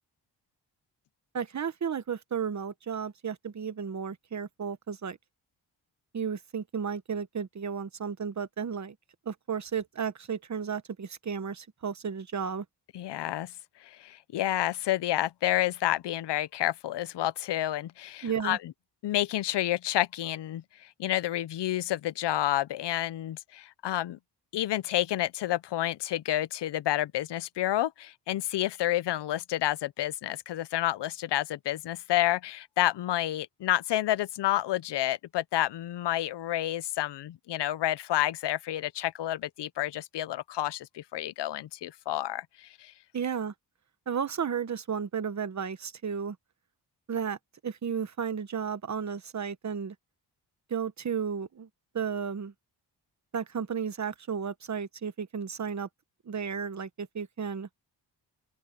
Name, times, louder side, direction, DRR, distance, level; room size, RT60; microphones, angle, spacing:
voice 1, 1.3-5.2 6.1-8.9 9.2-12.6 18.2-18.6 43.1-43.5 44.1-46.4 47.1-47.4 47.6-49.9 50.7-51.7 51.9-52.5 53.3-55.9 56.2-57.7, right 7 dB, 40° right, 1.3 m, -33 dB
voice 2, 12.9-13.5 13.8-18.6 19.0-24.2 24.5-42.9, left 14 dB, 75° left, 0.7 m, -29 dB
open air
cardioid pair, 100°, 42 cm